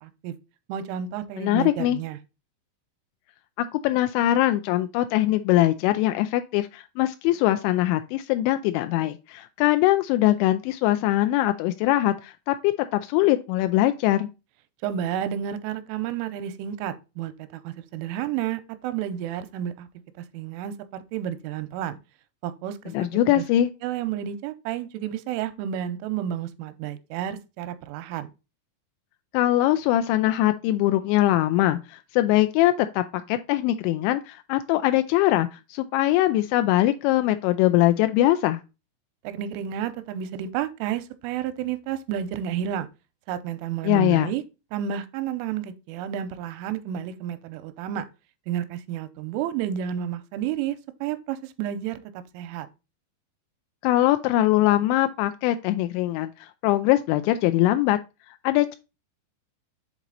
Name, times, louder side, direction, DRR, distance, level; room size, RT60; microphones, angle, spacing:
voice 1, 0.0-0.3 0.7-2.2 14.8-19.9 20.2-22.0 22.4-23.4 23.8-28.3 39.2-42.9 43.3-44.4 44.7-48.1 48.5-52.7, right 10 dB, 85° right, 3.1 m, -31 dB
voice 2, 1.4-2.0 3.6-14.3 22.9-23.7 29.3-38.6 43.8-44.3 53.8-58.0 58.4-58.8, left 15 dB, 85° left, 2.6 m, -22 dB
7.5 x 4.1 x 3.8 m
omnidirectional pair, 5.7 m